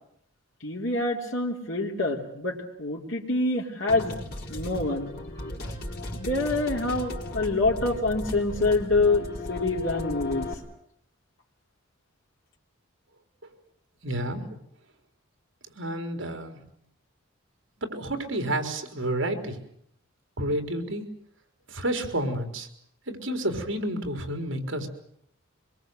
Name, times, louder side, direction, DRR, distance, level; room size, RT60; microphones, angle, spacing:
voice 1, 0.6-4.1 4.5-5.1 5.6-5.8 6.1-10.5, left 2 dB, 65° left, -1 dB, 3.3 m, -26 dB
sound 1, 3.9-10.5, left 1 dB, 50° left, 4.6 m, -36 dB
voice 2, 14.0-14.4 15.8-16.6 17.8-19.6 20.4-21.0 21.7-22.7 23.1-24.9, right 1 dB, 65° right, 6 dB, 4.0 m, -30 dB
24.5 x 22.0 x 7.9 m, 0.72 s
head